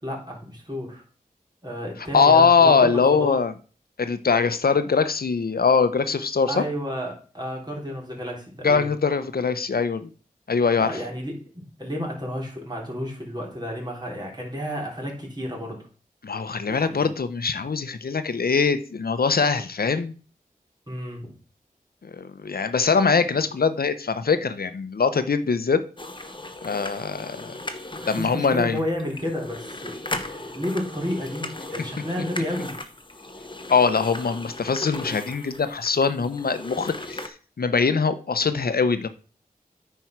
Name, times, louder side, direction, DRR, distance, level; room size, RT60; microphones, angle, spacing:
voice 1, 0.0-1.0 1.6-3.4 6.5-8.9 10.8-15.8 16.7-17.1 20.9-21.3 28.0-30.0 30.2-32.8, equal, 25° right, -1 dB, 3.7 m, -31 dB
voice 2, 2.1-3.5 4.0-6.6 8.6-10.1 10.5-10.9 16.2-20.1 22.0-25.8 26.6-27.6 28.1-28.8 33.7-39.1, left 5 dB, 90° left, 11 dB, 0.7 m, -22 dB
sound 1, 26.0-37.3, left 2 dB, 35° left, 1.0 m, -37 dB
9.3 x 4.5 x 5.9 m, 0.38 s
wide cardioid pair, 55°, 15 cm